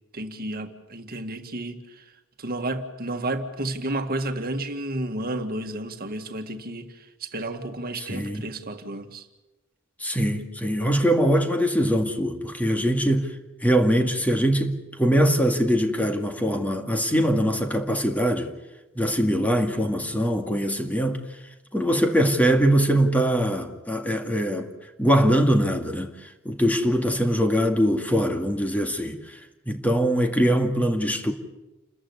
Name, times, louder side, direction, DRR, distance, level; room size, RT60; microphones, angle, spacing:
voice 1, 0.1-9.3, right 1 dB, 50° right, 1.9 m, -32 dB
voice 2, 8.1-8.4 10.0-13.3 13.6-18.5 19.0-21.2 21.7-24.7 25.0-26.1 26.4-29.4 29.7-31.3, equal, 10° left, 2.2 m, -22 dB
29.0 x 14.5 x 9.7 m
head